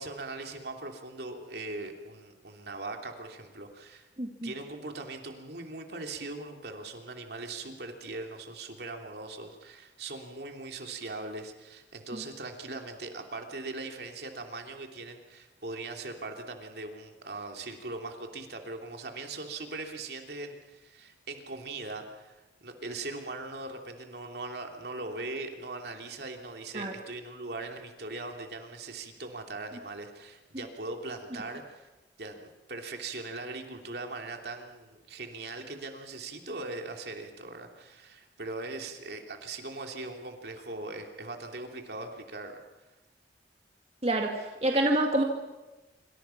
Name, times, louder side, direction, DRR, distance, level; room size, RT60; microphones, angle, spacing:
voice 1, 0.0-4.1 4.4-31.9 32.2-42.5, right 2 dB, 65° right, 3 dB, 3.0 m, -40 dB
voice 2, 4.2-4.5 12.1-12.2 26.7-26.9 44.0-45.2, right 1 dB, 35° right, 2 dB, 2.0 m, -27 dB
26.5 x 25.5 x 5.9 m, 1.1 s
head